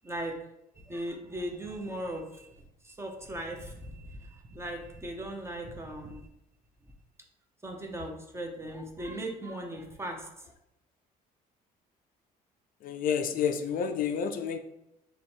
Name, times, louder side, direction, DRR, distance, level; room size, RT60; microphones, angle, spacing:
voice 1, 0.0-0.4 0.7-2.5 2.8-6.3 7.6-10.3, right 1 dB, 15° right, 2 dB, 0.7 m, -38 dB
voice 2, 12.8-14.6, left 7 dB, 55° left, 7 dB, 0.4 m, -29 dB
3.1 x 3.0 x 4.4 m, 0.84 s
cardioid pair, 110°, 17 cm